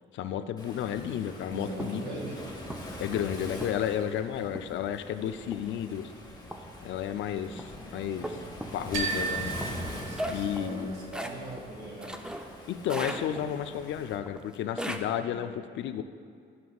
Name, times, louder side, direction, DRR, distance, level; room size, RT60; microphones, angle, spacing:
voice 1, 0.1-2.1 3.0-6.1 6.8-8.4 8.7-9.5 10.3-10.9 12.7-16.0, left 9 dB, 70° left, 10 dB, 0.4 m, -32 dB
Waves surf, 0.6-14.2, left 1 dB, 20° left, 1.2 m, -43 dB
voice 2, 1.5-2.5 10.0-12.2 15.3-15.5, right 1 dB, 55° right, -2 dB, 1.8 m, -40 dB
sound 1, 1.8-2.0 2.7-3.0 3.6-4.0 4.6-4.9 5.5-5.9 6.5-6.8 7.6-7.8 8.2-8.9 9.6-12.6 12.9-13.7 14.3-15.0, equal, 5° right, 0.5 m, -38 dB
sound 2, 8.9-10.9, right 4 dB, 80° right, 1.1 m, -34 dB
11.0 x 5.9 x 2.3 m, 2.2 s
cardioid pair, 90°, 20 cm